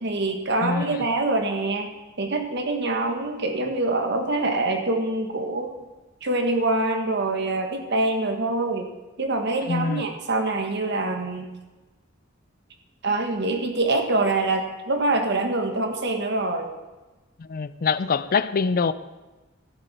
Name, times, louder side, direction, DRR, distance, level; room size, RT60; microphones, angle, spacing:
voice 1, 0.0-1.9 2.2-5.7 6.2-8.9 9.2-11.5 13.0-16.7, right 2 dB, 60° right, 1.6 m, -25 dB
voice 2, 9.6-10.0 17.5-18.9, left 5 dB, 45° left, 0.4 m, -24 dB
13.5 x 10.5 x 4.3 m
head